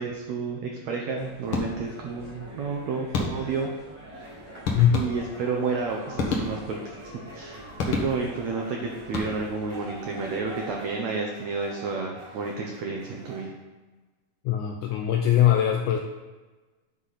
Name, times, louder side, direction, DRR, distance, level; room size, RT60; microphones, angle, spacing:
voice 1, 0.0-3.7 4.9-13.5, right 4 dB, 75° right, 1 dB, 1.7 m, -31 dB
sound 1, 1.2-10.7, equal, 10° right, 1.3 m, -45 dB
sound 2, 1.5-2.1 3.1-3.7 4.6-5.5 6.1-6.9 7.8-8.5 9.0-9.7, left 3 dB, 60° left, 1.5 m, -30 dB
sound 3, 4.1-13.5, right 2 dB, 40° right, 1.8 m, -47 dB
voice 2, 14.5-16.0, left 10 dB, 90° left, 3 dB, 1.7 m, -21 dB
9.9 x 5.8 x 4.1 m, 1.2 s
omnidirectional pair, 4.0 m